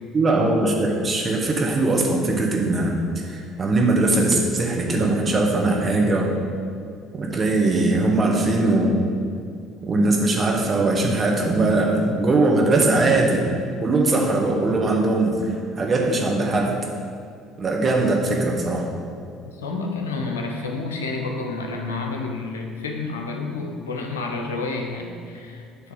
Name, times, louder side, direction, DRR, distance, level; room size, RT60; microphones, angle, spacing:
voice 1, 0.1-6.3 7.2-9.0 9.8-13.5 13.8-16.7 17.6-18.8, right 2 dB, 35° right, 0 dB, 1.3 m, -20 dB
voice 2, 19.5-25.9, left 3 dB, 85° left, 2 dB, 0.6 m, -30 dB
7.9 x 3.2 x 5.6 m, 2.2 s
hypercardioid pair, 60°, 0 cm